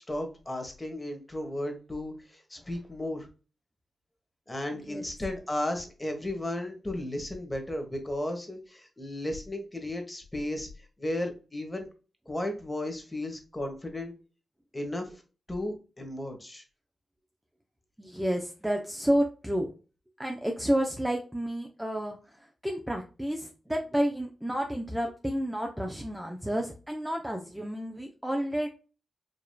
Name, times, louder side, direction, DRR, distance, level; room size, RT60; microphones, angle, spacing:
voice 1, 0.0-3.3 4.5-10.7 11.0-11.9 12.3-14.1 14.7-15.2 15.5-16.6, left 1 dB, 20° left, 4 dB, 1.4 m, -34 dB
voice 2, 4.7-5.0 18.0-19.7 20.2-22.2 22.6-28.7, equal, 10° right, 2 dB, 0.7 m, -30 dB
4.9 x 3.0 x 2.3 m, 0.33 s
cardioid pair, 65°, 0 cm